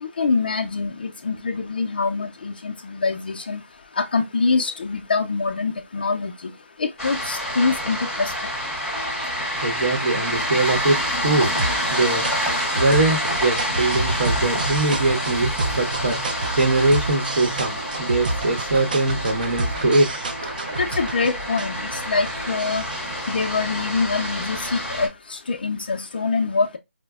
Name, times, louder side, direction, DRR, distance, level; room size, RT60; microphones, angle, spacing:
voice 1, 0.0-3.6 4.0-6.5 6.8-8.3 20.8-22.8 23.3-26.8, left 4 dB, 40° left, 0.4 m, -24 dB
sound 1, 7.0-25.1, equal, ahead, 0.7 m, -28 dB
sound 2, 8.9-24.5, right 2 dB, 40° right, 0.4 m, -30 dB
voice 2, 9.6-11.0 11.2-11.5 11.9-12.3 12.7-16.2 16.5-20.1, right 2 dB, 55° right, 0.9 m, -22 dB
4.9 x 2.0 x 2.3 m
hypercardioid pair, 170°, 8 cm